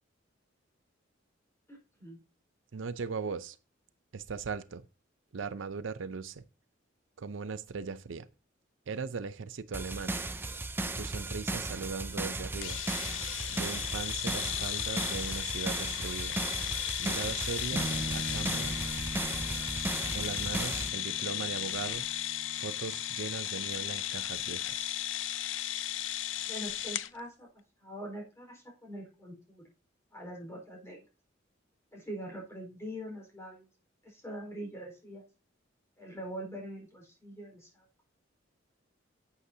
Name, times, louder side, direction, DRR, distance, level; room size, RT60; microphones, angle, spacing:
voice 1, 1.7-2.2 26.5-27.5 27.8-29.7 30.1-31.0 31.9-33.7 34.0-35.2 36.0-37.9, equal, 15° left, 4.5 m, -43 dB
voice 2, 2.7-3.6 4.1-4.8 5.3-6.4 7.2-8.3 8.9-10.2 10.9-12.8 13.5-16.4 17.0-18.8 20.1-22.1 22.6-24.9, right 5 dB, 75° right, 0.6 m, -39 dB
sound 1, 9.7-20.9, right 2 dB, 10° right, 0.6 m, -36 dB
sound 2, 12.6-27.1, left 12 dB, 70° left, 0.5 m, -35 dB
sound 3, 17.7-27.2, right 1 dB, 50° right, 0.9 m, -44 dB
11.5 x 8.1 x 2.7 m
head